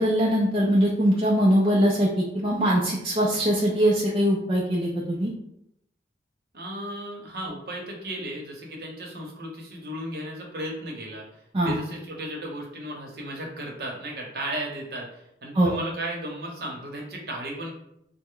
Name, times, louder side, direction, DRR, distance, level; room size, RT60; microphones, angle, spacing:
voice 1, 0.0-5.3 11.5-11.7 15.5-15.8, equal, 30° right, -4 dB, 0.4 m, -22 dB
voice 2, 6.5-17.7, right 1 dB, 60° right, -1 dB, 0.8 m, -35 dB
3.2 x 2.0 x 3.6 m, 0.78 s
head